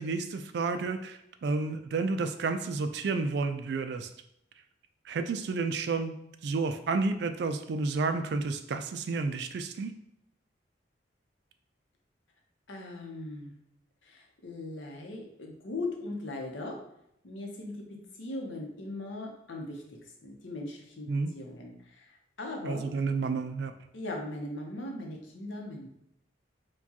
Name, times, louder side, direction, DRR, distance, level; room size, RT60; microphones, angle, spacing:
voice 1, 0.0-4.1 5.1-6.1 6.4-9.9 21.1-21.3 22.6-23.7, right 4 dB, 60° right, 8 dB, 0.3 m, -31 dB
voice 2, 12.7-13.6 14.0-16.8 17.2-17.8 18.2-19.8 20.2-21.1 21.3-22.1 22.4-22.9 23.9-25.9, left 2 dB, 80° left, 1 dB, 0.8 m, -39 dB
4.5 x 2.3 x 2.8 m, 0.77 s
head